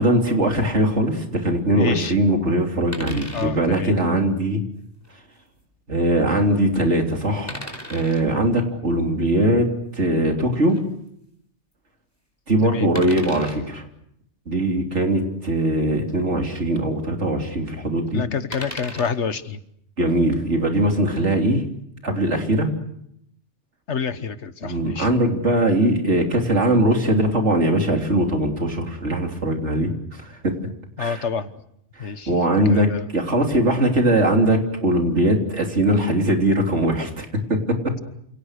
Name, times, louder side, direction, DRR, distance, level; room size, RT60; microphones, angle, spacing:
voice 1, 0.0-4.6 5.9-10.8 12.5-13.8 14.5-18.2 20.0-21.6 22.0-22.7 24.6-29.9 30.2-30.5 31.0-31.2 32.0-37.9, right 1 dB, 80° right, 3 dB, 3.8 m, -21 dB
voice 2, 1.7-2.1 3.3-3.9 12.6-12.9 18.1-19.6 23.9-25.1 31.0-31.5 32.0-32.3 32.7-33.0, left 6 dB, 80° left, 12 dB, 1.6 m, -28 dB
sound 1, 2.9-3.5 4.9-5.1 7.5-8.2 10.7-10.8 12.9-13.6 15.6-15.7 16.0-16.1 18.5-19.2 20.9-21.2, equal, 15° left, 4.7 m, -36 dB
28.0 x 28.0 x 6.7 m, 0.75 s
omnidirectional pair, 1.2 m